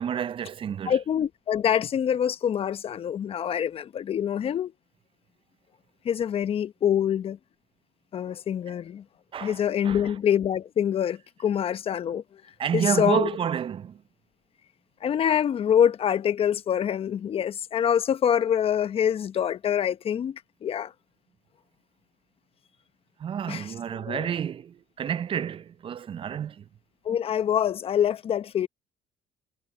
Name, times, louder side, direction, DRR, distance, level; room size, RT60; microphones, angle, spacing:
voice 1, 0.0-1.0 9.3-10.0 12.6-14.0 23.2-26.6, right 8 dB, 45° right, 0.7 m, -29 dB
voice 2, 0.8-4.7 6.0-7.4 8.1-9.0 9.4-12.4 12.7-13.3 15.0-20.9 23.5-23.7 24.1-24.3 27.0-28.7, left 9 dB, 50° left, 1.0 m, -25 dB
supercardioid pair, 65°, 13 cm